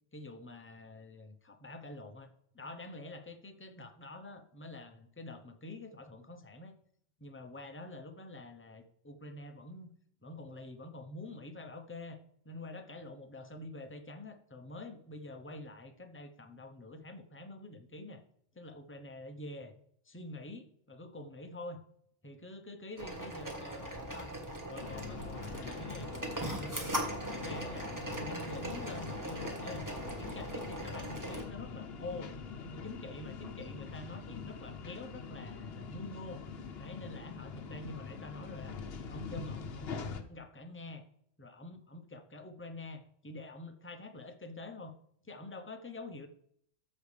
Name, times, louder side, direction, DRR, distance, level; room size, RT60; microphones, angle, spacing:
voice 1, 0.1-6.8 7.2-9.9 10.2-12.2 12.4-18.2 18.6-19.7 20.0-21.8 22.2-24.3 24.7-27.0 27.3-32.3 32.8-36.4 36.8-38.7 39.1-41.0 41.4-45.0 45.2-46.3, left 2 dB, 15° left, 7 dB, 0.6 m, -47 dB
sound 1, 23.0-31.4, right 1 dB, 15° right, 1.3 m, -40 dB
sound 2, 24.8-40.2, left 5 dB, 55° left, 1.0 m, -44 dB
13.5 x 5.3 x 3.3 m, 0.65 s
omnidirectional pair, 1.3 m